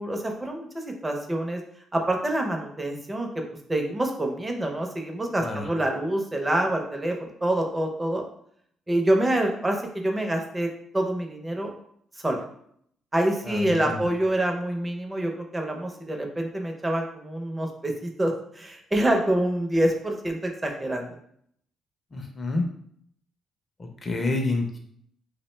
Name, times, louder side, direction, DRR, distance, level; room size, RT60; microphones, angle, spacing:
voice 1, 0.0-1.6 1.9-3.4 3.7-8.2 8.9-10.7 10.9-11.7 12.2-12.4 13.1-21.1, right 1 dB, 20° right, 3 dB, 0.5 m, -26 dB
voice 2, 13.5-14.0 22.1-22.6 24.0-24.8, left 2 dB, 35° left, 2 dB, 0.5 m, -28 dB
2.4 x 2.1 x 3.1 m, 0.67 s
cardioid pair, 90°, 0 cm